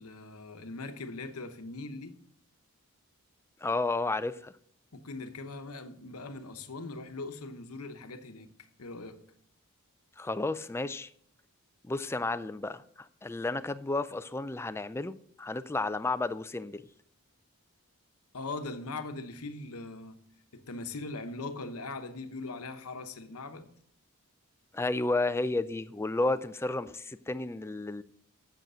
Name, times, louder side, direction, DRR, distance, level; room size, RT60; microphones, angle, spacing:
voice 1, 0.0-2.1 4.9-8.5 8.8-9.2 18.3-20.2 20.5-23.7, left 3 dB, 75° left, 1.0 m, -40 dB
voice 2, 3.6-4.5 10.2-11.1 11.8-16.9 24.7-28.0, left 2 dB, 10° left, 0.3 m, -32 dB
8.0 x 7.3 x 6.2 m
head